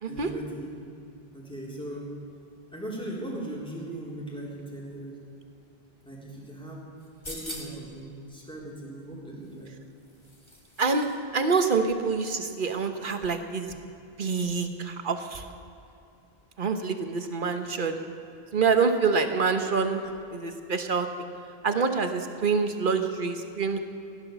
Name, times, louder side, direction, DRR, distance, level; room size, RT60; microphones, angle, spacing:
voice 1, 0.1-0.7 1.3-2.2 2.7-5.2 6.0-6.8 7.3-9.7, right 1 dB, 5° left, -5 dB, 3.8 m, -38 dB
sound 1, 7.0-7.9 9.4-11.2 11.4-11.6, left 1 dB, 25° left, 2.1 m, -43 dB
voice 2, 11.3-13.7 14.2-15.5 16.6-18.1 18.5-20.0 20.3-21.3 21.6-23.8, right 5 dB, 55° right, 6 dB, 1.3 m, -26 dB
16.5 x 11.5 x 7.0 m, 2.7 s
omnidirectional pair, 1.0 m